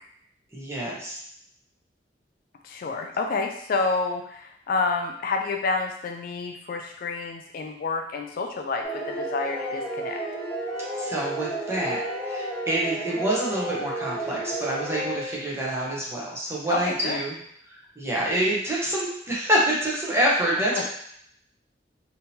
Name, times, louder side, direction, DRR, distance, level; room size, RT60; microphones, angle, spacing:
voice 1, 0.5-1.2 11.0-17.4 17.7-20.8, right 1 dB, 15° right, -5 dB, 0.9 m, -27 dB
voice 2, 2.6-10.2 16.7-17.2 20.7-20.8, left 4 dB, 50° left, 3 dB, 0.3 m, -29 dB
sound 1, 8.8-15.5, right 1 dB, 10° left, 1.5 m, -32 dB
3.6 x 2.8 x 2.8 m, 0.68 s
head